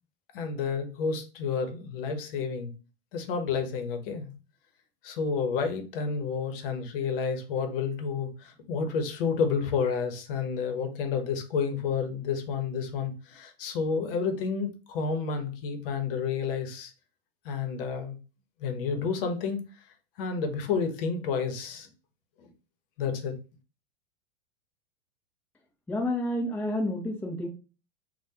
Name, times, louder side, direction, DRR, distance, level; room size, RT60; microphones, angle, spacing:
voice 1, 0.3-2.7 3.1-4.3 5.0-16.9 17.4-18.2 18.6-19.6 20.2-21.9 22.4-22.5 23.0-23.4, left 5 dB, 60° left, 6 dB, 0.9 m, -30 dB
voice 2, 25.9-27.5, left 1 dB, 5° left, 0 dB, 0.5 m, -29 dB
3.3 x 2.2 x 2.8 m, 0.33 s
hypercardioid pair, 110°, 32 cm